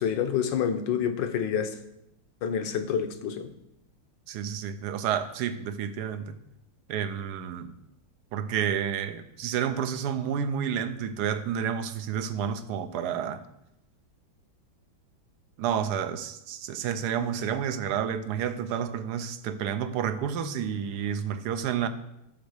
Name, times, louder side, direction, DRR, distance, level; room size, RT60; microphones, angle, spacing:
voice 1, 0.0-1.8 2.4-3.5, left 8 dB, 70° left, 8 dB, 1.5 m, -28 dB
voice 2, 4.3-6.4 6.9-7.7 8.3-13.4 15.6-21.9, right 8 dB, 65° right, 10 dB, 1.1 m, -30 dB
13.5 x 4.6 x 6.5 m, 0.83 s
omnidirectional pair, 2.1 m